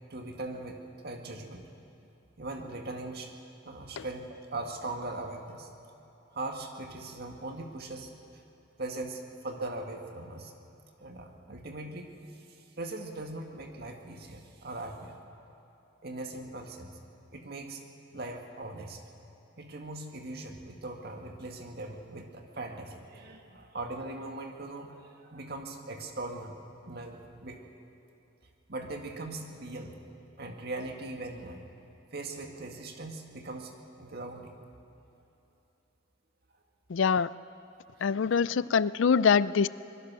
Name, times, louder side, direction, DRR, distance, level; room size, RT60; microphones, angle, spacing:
voice 1, 0.1-1.7 2.4-3.4 3.7-5.7 6.3-8.1 8.8-10.5 11.0-15.5 16.0-17.0 17.3-19.0 19.6-26.6 26.8-27.6 28.7-30.0 30.4-31.6 32.1-34.6 38.0-38.1, right 2 dB, 50° right, 3 dB, 2.0 m, -40 dB
voice 2, 36.9-37.3 38.0-39.7, left 6 dB, 70° left, 18 dB, 0.4 m, -24 dB
24.5 x 21.5 x 6.2 m, 3.0 s
head